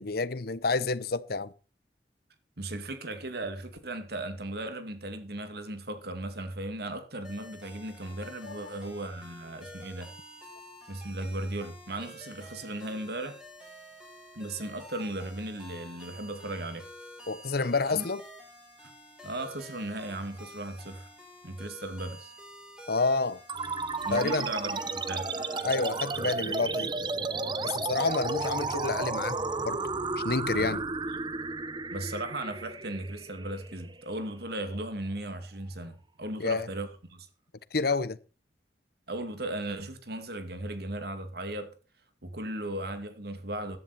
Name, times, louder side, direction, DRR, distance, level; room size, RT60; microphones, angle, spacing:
voice 1, 0.0-1.5 8.4-8.8 17.3-18.2 22.9-23.4 24.1-24.5 25.6-26.9 27.6-29.8 30.2-30.9 36.4-36.7 37.7-38.2, left 3 dB, 60° left, 0.9 m, -29 dB
voice 2, 2.6-10.1 10.9-13.4 14.3-16.9 17.9-18.1 18.8-18.9 19.2-21.1 21.4-22.3 24.1-25.3 30.5-30.8 31.9-37.3 39.1-41.7 42.2-43.8, right 1 dB, 60° right, 2.5 m, -36 dB
sound 1, 7.2-26.4, equal, 5° right, 7.0 m, -49 dB
sound 2, 23.5-34.4, right 3 dB, 25° right, 0.8 m, -33 dB
15.0 x 11.0 x 4.2 m
head